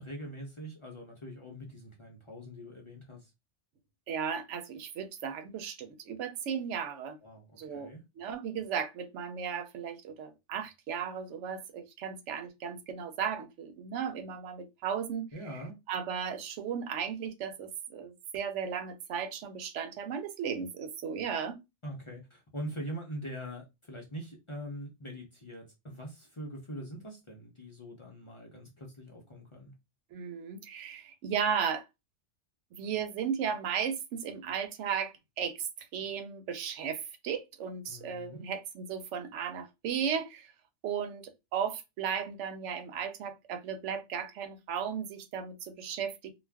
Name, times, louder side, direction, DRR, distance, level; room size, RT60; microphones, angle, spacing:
voice 1, 0.0-3.3 7.2-8.0 15.3-15.8 21.8-29.7 37.9-38.5, equal, 35° left, 0.5 m, -43 dB
voice 2, 4.1-7.2 7.5-7.9 8.2-15.3 15.5-15.6 15.9-21.6 30.1-31.9 32.7-40.5 40.8-41.2 41.5-46.3, right 7 dB, 85° right, 0.9 m, -35 dB
2.4 x 2.2 x 3.3 m
omnidirectional pair, 1.2 m